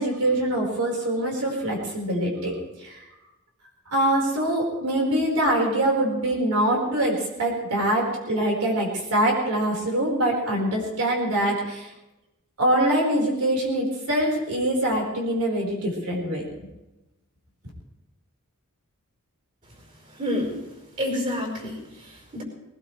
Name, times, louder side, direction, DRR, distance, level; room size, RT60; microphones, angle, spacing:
voice 1, 0.0-2.5 2.8-3.0 3.9-11.9 12.6-16.5, right 1 dB, 85° right, -1 dB, 4.7 m, -24 dB
voice 2, 20.1-20.6 21.0-22.4, left 1 dB, 35° right, -1 dB, 5.1 m, -29 dB
20.5 x 19.5 x 3.3 m, 0.97 s
head